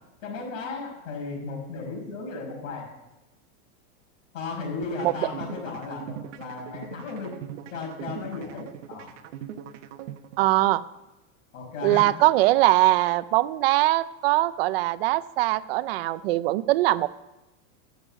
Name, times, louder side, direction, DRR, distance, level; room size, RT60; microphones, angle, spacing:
voice 1, 0.2-2.9 4.3-7.3 7.7-9.1 11.5-12.1, left 4 dB, 90° left, 1 dB, 5.4 m, -35 dB
sound 1, 4.8-10.8, right 10 dB, 65° right, 1.0 m, -41 dB
voice 2, 10.4-10.8 11.8-17.1, right 17 dB, 50° right, 17 dB, 0.5 m, -21 dB
12.5 x 8.2 x 7.5 m, 1.0 s
supercardioid pair, 170°, 38 cm